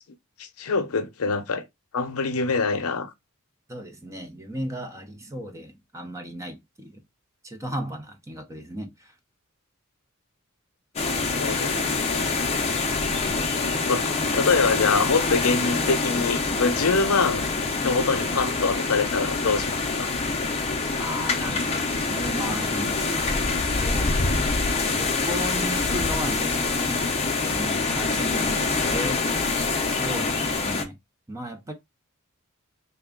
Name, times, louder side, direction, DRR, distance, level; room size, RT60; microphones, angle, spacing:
voice 1, 0.4-1.6 1.9-3.1 11.2-12.5 13.9-17.5 17.8-20.1, left 4 dB, 85° left, 0.6 m, -25 dB
voice 2, 3.7-7.0 7.4-9.1 18.1-18.3 20.9-23.4 23.6-29.2 29.9-31.0 31.3-31.7, equal, 15° right, 0.6 m, -35 dB
sound 1, 11.0-30.8, left 3 dB, 30° left, 0.6 m, -25 dB
3.4 x 2.2 x 3.7 m
head